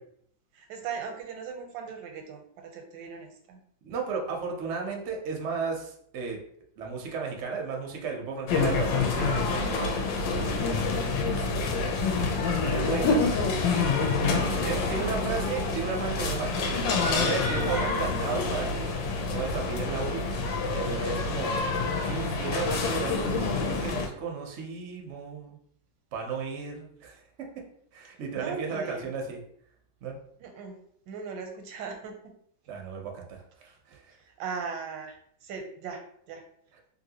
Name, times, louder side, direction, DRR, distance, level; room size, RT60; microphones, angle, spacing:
voice 1, 0.5-3.6 12.8-13.2 14.3-15.5 17.6-17.8 28.3-29.1 30.4-30.8 31.1-32.1 34.2-36.0 36.3-36.4, right 5 dB, 85° right, 4 dB, 1.3 m, -39 dB
voice 2, 3.8-6.4 6.8-10.1 10.4-10.9 12.6-13.2 14.6-16.7 17.1-19.0 19.3-21.5 22.0-25.6 26.1-27.5 27.9-29.4 30.0-30.2 32.7-34.1, right 5 dB, 65° right, 1 dB, 0.7 m, -34 dB
sound 1, 8.5-24.1, left 4 dB, 85° left, 1.3 m, -27 dB
3.0 x 2.7 x 2.8 m, 0.66 s
omnidirectional pair, 2.0 m